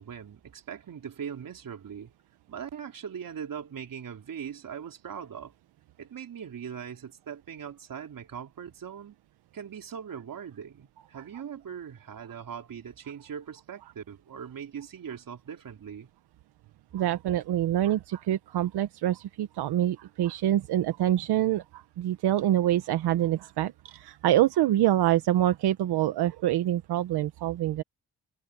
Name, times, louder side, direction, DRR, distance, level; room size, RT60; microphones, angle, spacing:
voice 1, 0.0-2.1 2.5-5.5 6.0-9.2 9.5-16.1, right 8 dB, 60° right, 3.9 m, -40 dB
voice 2, 16.9-27.8, right 12 dB, 85° right, 1.0 m, -26 dB
cardioid pair, 90°, 38 cm